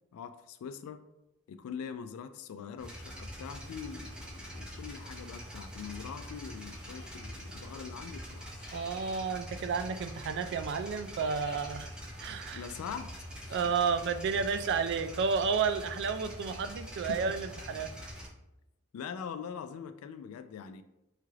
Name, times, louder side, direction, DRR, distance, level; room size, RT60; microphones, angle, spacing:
voice 1, 0.1-1.0 1.5-8.5 12.5-13.2 13.4-13.6 16.6-16.7 17.1-17.3 18.9-20.8, left 7 dB, 80° left, 14 dB, 0.3 m, -43 dB
sound 1, 2.8-18.3, equal, 5° right, 0.7 m, -44 dB
sound 2, 6.8-7.2 8.5-9.3 11.0-11.8, left 3 dB, 55° left, 1.0 m, -53 dB
voice 2, 8.7-11.9 12.2-12.6 13.5-17.9, right 5 dB, 55° right, 10 dB, 0.3 m, -31 dB
5.6 x 2.4 x 3.1 m, 0.91 s
head